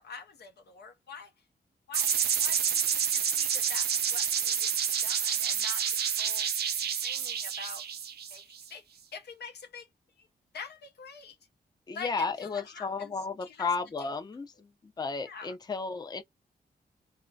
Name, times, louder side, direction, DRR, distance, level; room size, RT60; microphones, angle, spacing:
voice 1, 0.0-1.3 1.9-7.9 8.3-8.8 9.1-9.9 10.2-10.3 10.5-11.4 11.9-13.1 13.4-13.7 14.0-14.1 15.2-15.5, left 5 dB, 80° left, 0.6 m, -46 dB
sound 1, 1.9-8.6, right 8 dB, 70° right, 0.4 m, -29 dB
voice 2, 11.9-16.2, left 4 dB, 25° left, 0.5 m, -33 dB
2.3 x 2.0 x 2.6 m
wide cardioid pair, 100°, 17 cm